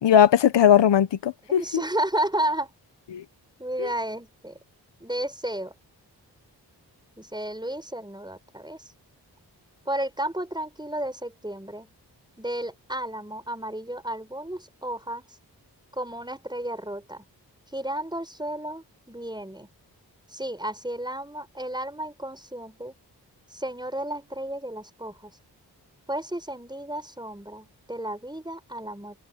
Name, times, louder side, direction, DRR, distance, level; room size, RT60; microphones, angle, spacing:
voice 1, 0.0-1.8 3.1-3.2 3.8-3.9, left 9 dB, 85° left, 1.1 m, -19 dB
voice 2, 1.5-2.7 3.6-4.6 5.0-5.7 7.2-8.8 9.9-11.9 12.4-15.2 15.9-17.3 17.7-19.7 20.3-22.9 23.5-25.3 26.1-29.2, right 1 dB, 10° right, 5.2 m, -32 dB
cardioid pair, 40°, 42 cm